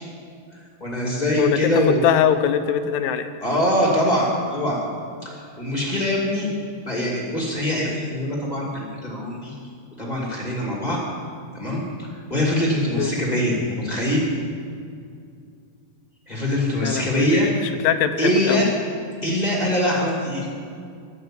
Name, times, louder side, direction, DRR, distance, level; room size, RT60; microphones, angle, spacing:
voice 1, 0.8-2.0 3.4-4.8 5.2-6.5 6.8-9.5 10.0-11.0 11.5-11.8 12.3-14.2 16.3-17.5 18.2-18.6 19.2-20.4, equal, 20° left, -3 dB, 1.0 m, -23 dB
voice 2, 1.4-3.3 13.0-13.1 16.8-18.6, left 9 dB, 80° left, 9 dB, 2.8 m, -22 dB
11.0 x 11.0 x 7.6 m, 2.3 s
omnidirectional pair, 4.8 m